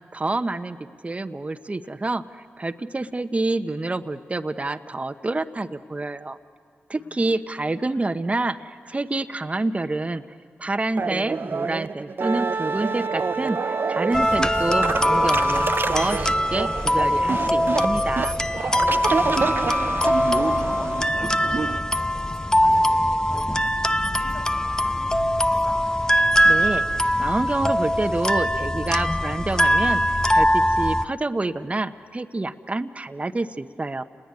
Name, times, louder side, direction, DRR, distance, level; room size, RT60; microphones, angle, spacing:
voice 1, 0.1-0.8 1.0-6.4 6.9-10.2 10.6-18.4 26.4-34.0, right 2 dB, 30° right, 7 dB, 1.0 m, -28 dB
voice 2, 7.0-7.5 18.9-19.9 20.2-25.8, left 2 dB, 65° left, -1 dB, 6.4 m, -44 dB
sound 1, 11.0-21.8, right 5 dB, 50° right, 0.6 m, -28 dB
Wind instrument woodwind instrument, 12.2-16.8, right 4 dB, 70° right, 1.2 m, -31 dB
sound 2, 14.1-31.1, equal, 15° left, 0.7 m, -22 dB
29.5 x 20.0 x 9.7 m, 2.4 s
supercardioid pair, 45°, 5 cm